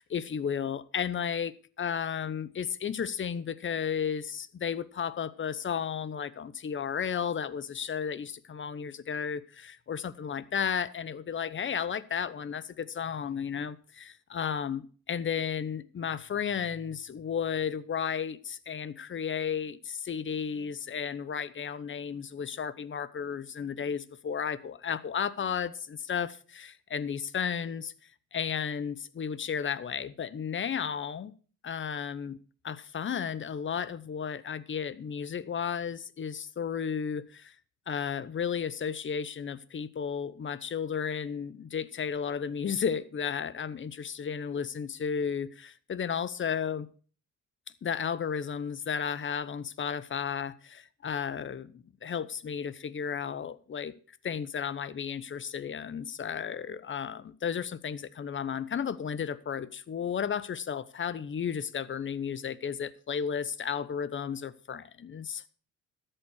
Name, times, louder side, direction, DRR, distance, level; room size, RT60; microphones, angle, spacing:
voice 1, 0.0-27.9 28.3-31.3 31.6-32.4 32.6-37.5 37.9-46.9 47.8-53.9 54.2-65.4, left 7 dB, 40° left, 1.0 m, -33 dB
13.0 x 7.8 x 6.4 m
cardioid pair, 90°, 30 cm